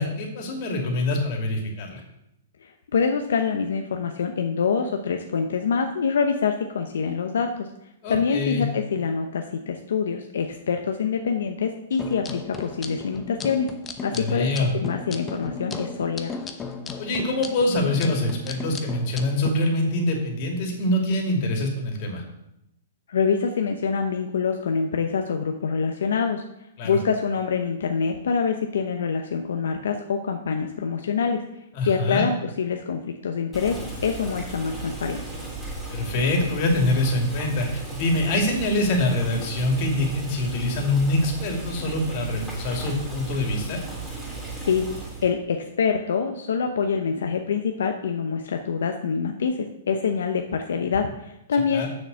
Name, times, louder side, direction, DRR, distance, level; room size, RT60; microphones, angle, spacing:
voice 1, 0.0-2.0 8.0-8.6 14.1-14.7 17.0-22.2 26.8-27.0 31.7-32.3 35.9-43.8 51.7-51.9, left 1 dB, 45° left, 1 dB, 2.6 m, -24 dB
voice 2, 2.6-7.7 8.1-13.7 14.0-16.3 23.1-26.4 26.8-31.4 31.8-35.4 44.6-44.9 45.2-51.9, left 6 dB, 80° left, 5 dB, 0.8 m, -25 dB
sound 1, 11.9-19.5, left 4 dB, 15° left, 0.9 m, -36 dB
Boiling, 33.5-45.3, right 3 dB, 5° right, 3.5 m, -36 dB
6.9 x 6.7 x 7.0 m, 0.84 s
hypercardioid pair, 135°, 0 cm